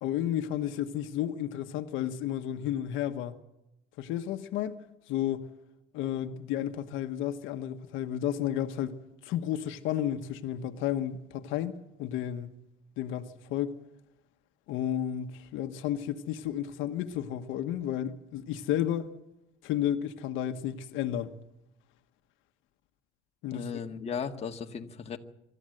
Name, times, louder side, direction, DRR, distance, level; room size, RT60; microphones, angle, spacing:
voice 1, 0.0-3.4 4.0-4.8 5.1-5.5 5.9-12.5 13.0-13.7 14.7-19.1 19.6-21.3 23.4-23.7, left 11 dB, 75° left, 1.3 m, -32 dB
voice 2, 23.5-25.2, left 6 dB, 30° left, 1.7 m, -36 dB
25.5 x 13.5 x 7.9 m
cardioid pair, 130°, 20 cm